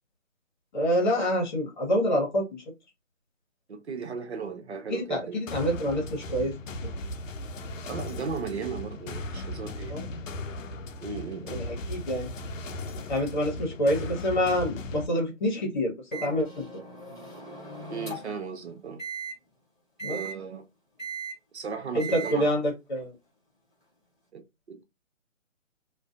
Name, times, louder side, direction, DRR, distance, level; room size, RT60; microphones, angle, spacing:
voice 1, 0.7-2.6 4.9-6.5 6.8-6.9 9.9-10.1 11.4-12.3 13.1-15.9 16.2-16.8 20.0-20.2 21.9-23.1, equal, 35° left, 1.1 m, -27 dB
voice 2, 3.7-5.4 7.8-9.9 11.0-11.6 17.9-19.0 20.1-20.6 21.5-22.5 24.3-24.4 24.7-24.8, right 5 dB, 60° right, 0.6 m, -36 dB
sound 1, 5.5-15.1, left 1 dB, 80° left, 0.5 m, -37 dB
Microwave oven, 16.1-18.4 19.0-19.3 20.0-20.3 21.0-21.3 22.0-22.3, right 4 dB, 5° right, 0.6 m, -38 dB
2.4 x 2.3 x 2.3 m
figure-of-eight pair, 150°, 39 cm